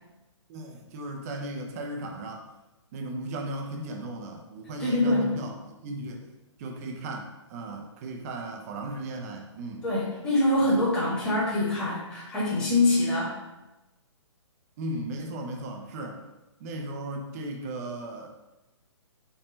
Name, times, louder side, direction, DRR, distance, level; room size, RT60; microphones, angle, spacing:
voice 1, 0.5-2.5 2.9-6.3 6.6-9.8 14.8-16.2 16.6-18.3, right 1 dB, 30° right, 2 dB, 0.5 m, -36 dB
voice 2, 4.8-5.3 9.8-13.3, left 2 dB, 5° left, -9 dB, 1.3 m, -24 dB
4.5 x 2.7 x 4.2 m, 0.99 s
hypercardioid pair, 150°, 16 cm